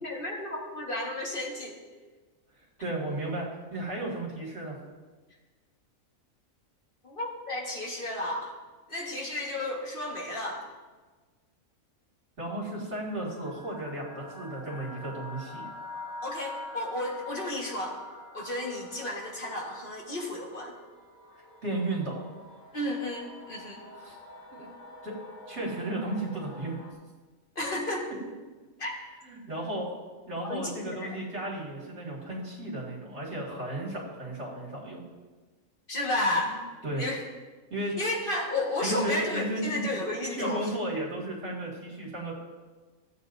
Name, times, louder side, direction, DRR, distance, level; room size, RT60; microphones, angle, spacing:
voice 1, 0.0-1.8 7.0-8.5 8.9-10.6 16.2-18.0 18.3-20.7 22.7-23.8 27.5-28.1 28.8-28.9 30.5-31.2 35.9-36.6 37.0-37.2 38.0-40.7, left 1 dB, 40° left, -2 dB, 1.8 m, -32 dB
voice 2, 2.8-4.8 12.4-15.7 21.6-22.3 24.0-24.2 24.5-24.7 25.0-25.1 25.5-26.8 29.2-30.0 30.3-35.0 36.8-37.1 37.7-38.0 38.8-39.8 40.3-42.3, right 1 dB, 50° right, -5 dB, 2.7 m, -34 dB
sound 1, 12.9-26.9, left 2 dB, 80° left, 2.2 m, -46 dB
16.0 x 8.5 x 2.7 m, 1.3 s
omnidirectional pair, 1.4 m